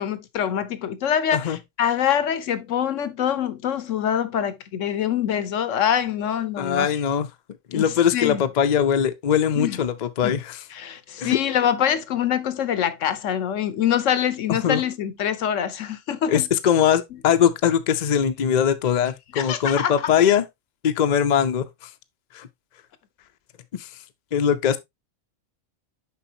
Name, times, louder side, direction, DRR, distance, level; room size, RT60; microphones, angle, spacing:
voice 1, 0.0-6.9 7.7-8.4 9.6-9.8 10.2-10.4 10.7-16.5 19.3-20.1, left 9 dB, 75° left, 1.1 m, -25 dB
voice 2, 6.6-7.3 7.7-10.6 11.2-11.4 14.5-14.8 16.3-20.4 20.8-21.9 22.3-22.5 23.7-23.9 24.3-24.8, left 8 dB, 50° left, 0.5 m, -21 dB
6.9 x 5.1 x 2.7 m
omnidirectional pair, 1.3 m